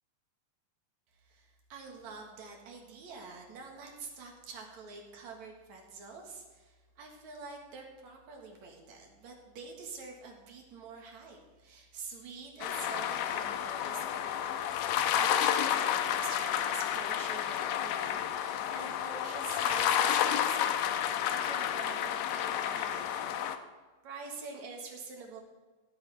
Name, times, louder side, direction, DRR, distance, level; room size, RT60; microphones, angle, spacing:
voice 1, 1.2-14.6 15.0-21.0 21.3-23.5 24.0-25.4, right 4 dB, 60° right, 1 dB, 2.7 m, -46 dB
sound 1, 12.6-23.6, left 10 dB, 85° left, 2.4 m, -31 dB
16.5 x 9.0 x 3.5 m, 1.3 s
omnidirectional pair, 4.2 m